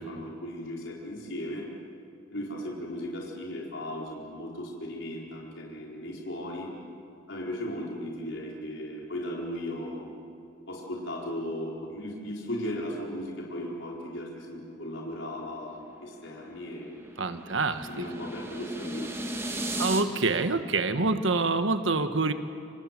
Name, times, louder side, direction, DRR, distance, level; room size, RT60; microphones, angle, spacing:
voice 1, 0.0-1.7 2.3-6.7 7.3-10.1 10.7-17.0 17.9-19.1, left 1 dB, 80° left, -3 dB, 4.5 m, -36 dB
sound 1, 15.7-20.0, right 1 dB, 15° right, 2.3 m, -36 dB
voice 2, 17.2-18.1 19.8-22.3, right 3 dB, 90° right, 9 dB, 1.4 m, -26 dB
29.5 x 26.0 x 7.6 m, 2.4 s
head